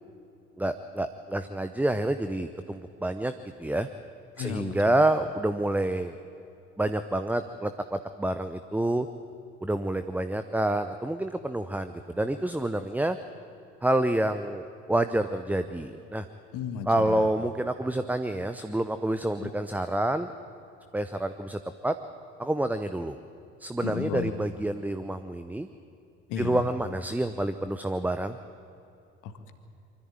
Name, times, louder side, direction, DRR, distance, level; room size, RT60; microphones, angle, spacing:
voice 1, 0.6-3.3 3.6-3.9 4.4-6.2 6.8-9.1 9.6-13.2 13.8-16.3 16.9-20.3 20.9-21.9 22.4-23.2 23.6-25.7 26.4-28.4, right 1 dB, 5° right, 10 dB, 0.7 m, -28 dB
voice 2, 4.4-5.1 16.5-17.3 19.4-19.5 23.8-24.3 26.3-26.7 29.2-29.5, left 8 dB, 60° left, 9 dB, 1.7 m, -34 dB
24.0 x 14.0 x 9.0 m, 2.7 s
figure-of-eight pair, 55°, 35 cm